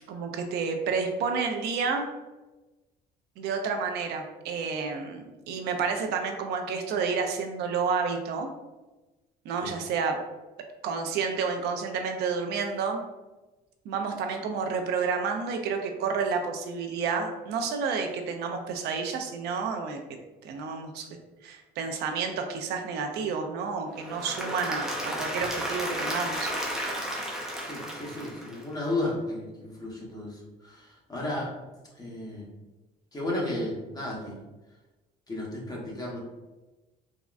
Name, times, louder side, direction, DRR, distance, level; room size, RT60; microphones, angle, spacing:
voice 1, 0.1-2.1 3.4-8.5 9.4-10.2 10.8-13.0 13.9-20.0 20.4-21.1 21.4-26.5, right 5 dB, 80° right, 4 dB, 0.4 m, -30 dB
Applause / Crowd, 23.9-28.9, equal, 5° right, 0.5 m, -33 dB
voice 2, 27.6-31.5 32.0-32.5 33.1-34.4 35.3-36.2, left 1 dB, 25° left, -3 dB, 0.9 m, -33 dB
3.5 x 2.1 x 2.4 m, 1.1 s
cardioid pair, 110°, 17 cm